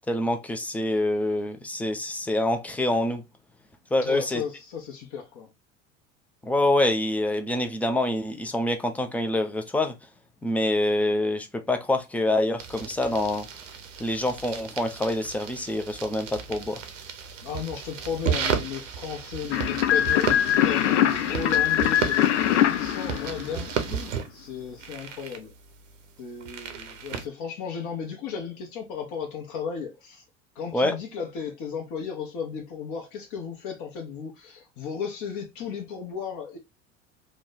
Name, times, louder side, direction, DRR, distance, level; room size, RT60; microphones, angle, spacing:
voice 1, 0.1-3.2 3.9-4.4 6.4-10.0 10.4-13.5 14.0-16.8 30.7-31.0, left 1 dB, 5° left, 0.3 m, -26 dB
voice 2, 4.0-5.5 17.4-25.5 26.2-30.2 30.5-36.6, left 7 dB, 50° left, 0.9 m, -35 dB
sound 1, 12.6-27.3, right 7 dB, 80° right, 0.8 m, -34 dB
sound 2, 19.5-24.0, left 11 dB, 65° left, 0.5 m, -23 dB
3.1 x 2.1 x 3.8 m
hypercardioid pair, 80°, 38 cm